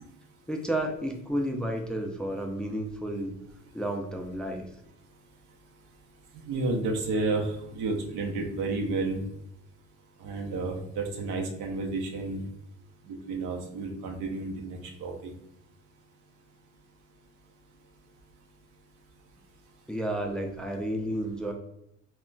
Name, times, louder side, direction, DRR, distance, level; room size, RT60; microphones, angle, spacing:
voice 1, 0.5-3.3 3.7-4.7 19.9-21.5, right 1 dB, 5° left, 2 dB, 0.3 m, -31 dB
voice 2, 6.5-9.2 10.2-12.4 13.1-15.3, right 3 dB, 85° right, 1 dB, 0.6 m, -31 dB
2.2 x 2.1 x 3.8 m, 0.76 s
cardioid pair, 90°, 30 cm